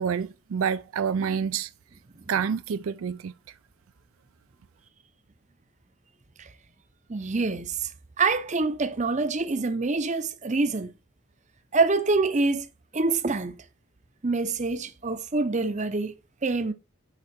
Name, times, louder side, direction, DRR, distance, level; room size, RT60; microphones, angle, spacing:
voice 1, 0.0-1.7 2.3-3.3, right 7 dB, 70° right, 0.4 m, -28 dB
voice 2, 7.1-7.9 8.2-10.9 11.7-12.7 12.9-13.5 14.2-16.7, right 3 dB, 35° right, 0.6 m, -26 dB
11.0 x 4.8 x 4.3 m
head